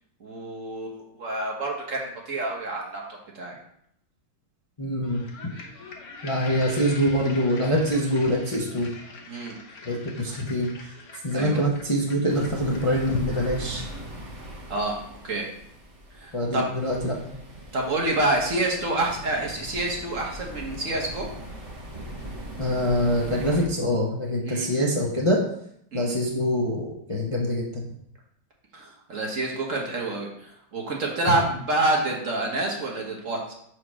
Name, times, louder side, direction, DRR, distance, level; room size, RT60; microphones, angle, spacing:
voice 1, 0.2-3.0 3.3-3.6 9.3-9.5 11.3-11.6 14.7-15.5 16.1-16.8 17.7-21.3 24.4-24.7 25.9-26.1 28.7-33.5, right 2 dB, 50° right, 0 dB, 1.5 m, -28 dB
voice 2, 4.8-5.2 6.2-8.9 9.8-10.7 11.2-13.8 16.3-17.2 22.6-25.4 25.9-27.9, equal, 25° left, -3 dB, 0.8 m, -24 dB
sound 1, 5.0-14.3, left 4 dB, 50° left, 1.2 m, -42 dB
sound 2, 12.3-23.7, right 1 dB, 25° right, 1.0 m, -40 dB
5.0 x 4.7 x 6.1 m, 0.71 s
omnidirectional pair, 1.9 m